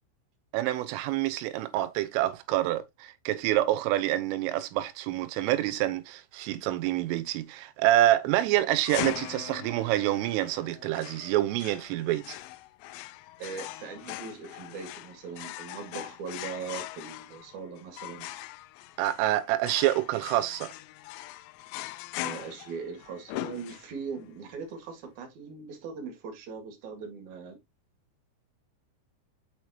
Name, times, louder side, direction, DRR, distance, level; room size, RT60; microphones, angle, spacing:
voice 1, 0.5-12.4 19.0-20.7, right 14 dB, 90° right, 3.3 m, -27 dB
sound 1, 8.8-24.2, left 16 dB, 90° left, 3.3 m, -41 dB
voice 2, 13.4-18.3 22.2-27.6, right 5 dB, 50° right, 2.5 m, -40 dB
7.1 x 5.9 x 2.8 m
omnidirectional pair, 5.8 m